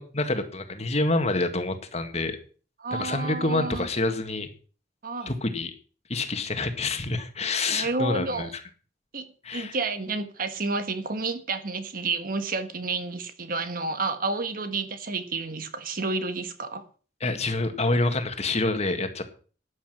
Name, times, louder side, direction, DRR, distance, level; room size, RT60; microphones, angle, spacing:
voice 1, 0.0-2.4 2.9-4.5 5.3-5.7 6.1-8.5 9.4-9.8 17.2-19.2, left 2 dB, 35° left, 1.9 m, -27 dB
voice 2, 2.8-3.9 5.0-5.3 7.7-8.5 9.1-9.3 9.5-16.8, right 3 dB, 50° right, 1.5 m, -30 dB
13.0 x 10.0 x 6.2 m
head